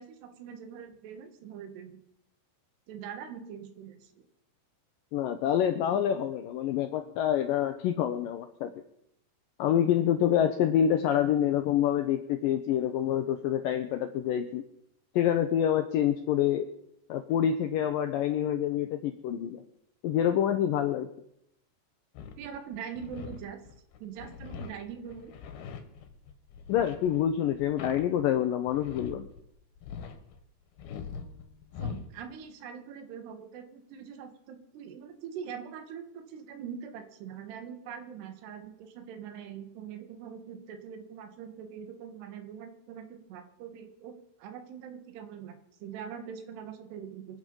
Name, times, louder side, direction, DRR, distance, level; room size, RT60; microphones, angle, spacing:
voice 1, 0.0-2.0 2.9-4.2 22.4-23.6 24.0-25.3 31.8-44.1 44.4-47.4, right 7 dB, 75° right, 7 dB, 3.6 m, -43 dB
voice 2, 5.1-8.7 9.6-14.6 15.2-16.7 17.1-19.6 20.0-21.1 26.7-29.3, left 10 dB, 85° left, 8 dB, 1.9 m, -27 dB
sound 1, 22.2-29.5 29.8-30.4 30.8-32.2, left 6 dB, 70° left, 3.1 m, -42 dB
24.5 x 8.9 x 5.5 m, 0.75 s
omnidirectional pair, 5.0 m